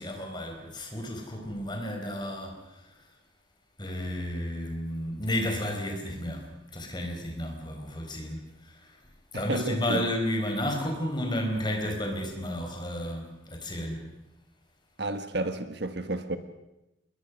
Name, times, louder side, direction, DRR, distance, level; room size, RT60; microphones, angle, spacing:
voice 1, 0.0-2.6 3.8-8.9 9.3-14.1, left 1 dB, 25° left, 3 dB, 4.6 m, -32 dB
voice 2, 9.3-10.0 15.0-16.4, right 2 dB, 55° right, 9 dB, 1.4 m, -31 dB
28.0 x 21.5 x 6.3 m, 0.94 s
head